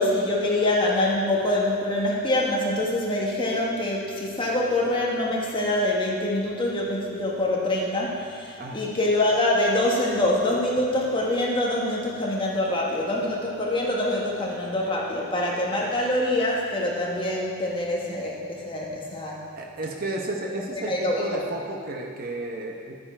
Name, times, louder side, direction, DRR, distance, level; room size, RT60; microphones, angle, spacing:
voice 1, 0.0-19.4 20.9-21.2, left 1 dB, 25° left, -3 dB, 1.5 m, -25 dB
voice 2, 19.5-23.0, right 2 dB, 40° right, 1 dB, 0.9 m, -32 dB
11.5 x 8.8 x 4.5 m, 2.3 s
head